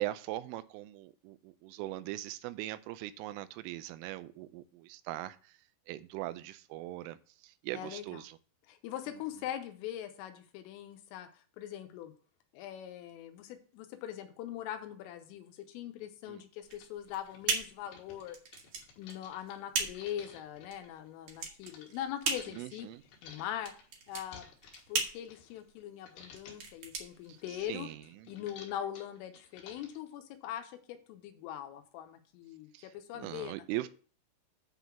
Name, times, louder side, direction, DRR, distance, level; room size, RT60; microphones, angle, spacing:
voice 1, 0.0-5.6 5.9-8.4 16.3-16.4 22.5-23.0 27.3-28.3 32.7-33.9, right 15 dB, 85° right, 3.2 m, -41 dB
voice 2, 7.7-8.2 8.7-11.3 11.6-12.1 12.5-18.4 19.0-22.9 23.2-23.7 24.1-24.5 24.9-27.9 28.3-33.6, left 11 dB, 90° left, 3.5 m, -42 dB
sound 1, 15.6-15.7 16.3-16.4 16.6-21.9 22.3-25.8 26.0-26.7 27.1-30.1, left 5 dB, 65° left, 3.5 m, -54 dB
sound 2, 16.6-27.9, right 5 dB, 60° right, 2.1 m, -38 dB
9.3 x 3.9 x 7.2 m
omnidirectional pair, 5.7 m